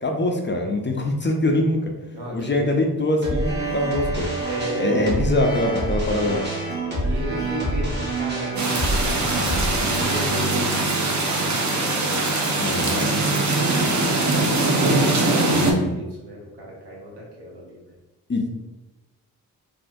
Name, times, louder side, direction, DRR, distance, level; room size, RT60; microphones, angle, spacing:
voice 1, 0.0-1.9 2.3-4.3 4.8-6.5 12.6-13.1 15.5-15.9 18.3-18.5, left 1 dB, 30° left, 2 dB, 0.6 m, -23 dB
voice 2, 2.1-2.8 4.4-5.1 7.0-9.3 9.6-17.9, right 1 dB, 75° right, -4 dB, 1.1 m, -35 dB
sound 1, 3.2-12.4, right 1 dB, 25° right, 1.3 m, -27 dB
sound 2, 8.6-15.7, right 2 dB, 45° right, 0.7 m, -22 dB
3.1 x 2.7 x 2.6 m, 1.1 s
supercardioid pair, 40°, 39 cm